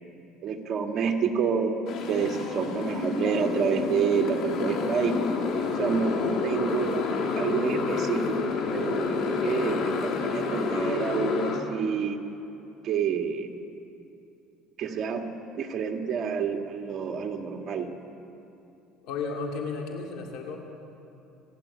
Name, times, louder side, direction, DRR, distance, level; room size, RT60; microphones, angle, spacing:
voice 1, 0.4-1.8 2.1-5.2 5.8-7.1 7.4-12.2 12.8-13.5 14.8-15.3 15.6-17.9, right 7 dB, 45° right, 3 dB, 2.0 m, -28 dB
Motorcycle, 1.9-11.6, left 4 dB, 55° left, 2.7 m, -29 dB
voice 2, 19.0-20.6, left 4 dB, 70° left, 1 dB, 2.8 m, -33 dB
28.5 x 11.5 x 8.6 m, 2.8 s
cardioid pair, 125°, 0 cm